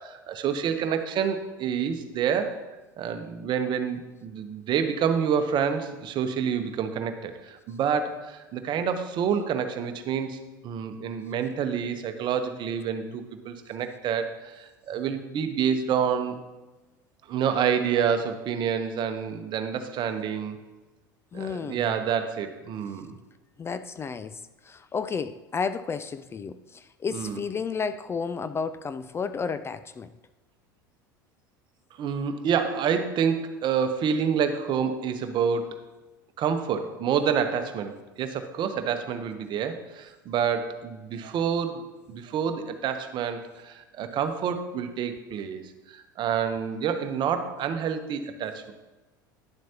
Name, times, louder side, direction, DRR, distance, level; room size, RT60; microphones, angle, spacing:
voice 1, 0.0-2.6 3.0-10.4 10.6-16.4 17.3-20.6 21.3-23.1 27.1-27.4 32.0-35.8 36.4-45.6 45.9-48.7, right 7 dB, 45° right, 8 dB, 0.9 m, -28 dB
voice 2, 21.3-22.0 23.6-30.1, left 5 dB, 25° left, 12 dB, 0.3 m, -32 dB
11.0 x 7.4 x 2.9 m, 1.1 s
hypercardioid pair, 80°, 11 cm